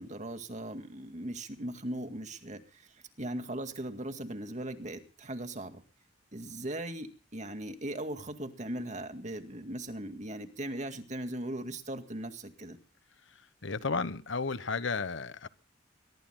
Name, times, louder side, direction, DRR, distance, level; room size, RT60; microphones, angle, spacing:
voice 1, 0.0-2.9 3.2-5.8 6.3-12.8, right 1 dB, 40° right, 7 dB, 2.1 m, -39 dB
voice 2, 13.6-15.5, left 4 dB, 80° left, 14 dB, 1.2 m, -33 dB
23.0 x 22.5 x 2.3 m, 0.36 s
head